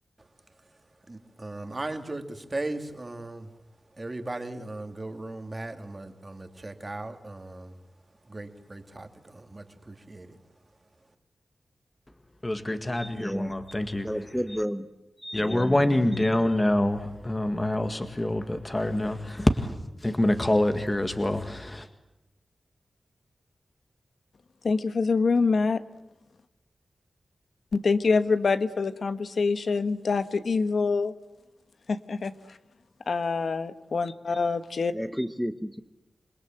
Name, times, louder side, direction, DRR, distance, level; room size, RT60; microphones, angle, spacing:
voice 1, 1.1-3.5 4.0-7.7 8.3-10.4, right 2 dB, 25° right, 6 dB, 2.5 m, -37 dB
voice 2, 12.4-14.4 15.3-19.8 20.0-21.9, left 1 dB, 20° left, 7 dB, 1.8 m, -26 dB
voice 3, 13.0-13.6 14.0-14.9 15.2-15.8 16.1-16.5 34.9-35.8, equal, ahead, 9 dB, 0.9 m, -32 dB
voice 4, 24.6-25.8 27.7-31.1 31.9-32.3 33.1-34.9, left 4 dB, 65° left, 11 dB, 1.3 m, -25 dB
27.5 x 21.5 x 8.9 m, 0.99 s
wide cardioid pair, 130°, 0 cm